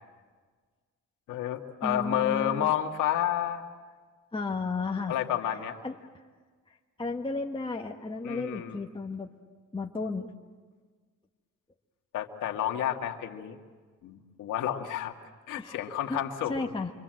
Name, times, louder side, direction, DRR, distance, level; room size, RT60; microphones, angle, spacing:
voice 1, 1.3-3.6 5.1-5.8 8.2-8.8 12.1-13.6 14.0-15.1 15.5-16.7, left 11 dB, 90° left, 4 dB, 2.0 m, -30 dB
voice 2, 1.8-2.7 4.3-5.2 5.4-5.6 5.8-6.0 6.7-9.3 9.7-10.3 15.5-16.2 16.5-16.9, left 3 dB, 15° left, 1 dB, 1.7 m, -33 dB
27.5 x 24.5 x 7.8 m, 1.5 s
cardioid pair, 90°, 30 cm